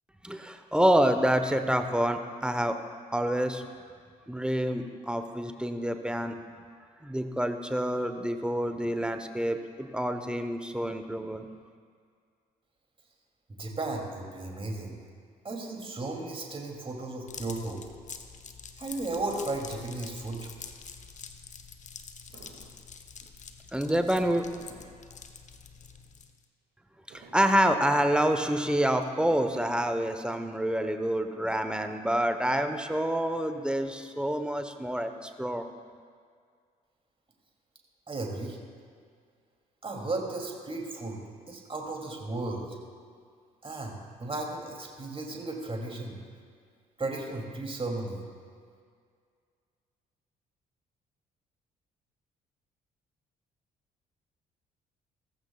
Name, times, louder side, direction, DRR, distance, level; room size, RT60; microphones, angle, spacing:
voice 1, 0.2-2.8 3.1-3.6 4.3-6.4 7.0-11.5 23.7-24.5 27.1-35.6, equal, 5° right, 7 dB, 1.0 m, -27 dB
voice 2, 13.6-15.0 15.4-17.8 18.8-20.5 38.1-38.6 39.8-41.2 41.5-42.8 43.6-46.2 47.0-48.2, right 2 dB, 25° right, 0 dB, 2.8 m, -35 dB
sound 1, 17.3-26.4, left 5 dB, 35° left, 1.0 m, -46 dB
sound 2, 21.1-21.2 21.8-21.9 22.3-22.7 24.6-25.1 26.9-27.7 29.1-29.9, right 3 dB, 60° right, 2.3 m, -52 dB
17.0 x 14.5 x 2.4 m, 2.1 s
figure-of-eight pair, 45°, 20 cm